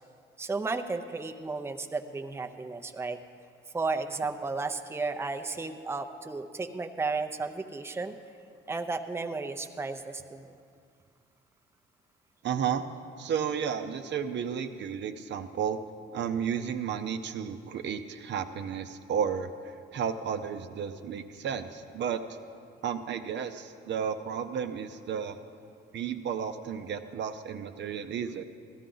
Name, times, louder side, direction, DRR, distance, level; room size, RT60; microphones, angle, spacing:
voice 1, 0.4-3.2 3.7-8.2 8.7-10.5, right 3 dB, 10° right, 5 dB, 0.6 m, -33 dB
voice 2, 12.4-12.8 13.2-15.8 16.1-22.4 22.8-25.4 25.9-28.4, right 7 dB, 65° right, 8 dB, 0.6 m, -33 dB
15.5 x 12.5 x 3.9 m, 2.2 s
cardioid pair, 90°, 20 cm